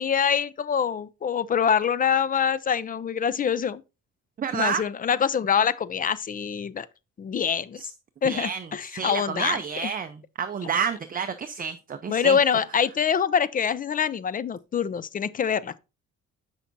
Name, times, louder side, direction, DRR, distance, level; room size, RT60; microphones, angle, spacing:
voice 1, 0.0-3.8 4.5-6.9 7.2-7.8 8.2-9.9 12.1-15.8, left 7 dB, 30° left, 0.4 m, -25 dB
voice 2, 4.4-4.8 7.8-7.9 8.2-12.4, right 7 dB, 30° right, 0.5 m, -30 dB
7.2 x 5.8 x 2.6 m
cardioid pair, 90°, 30 cm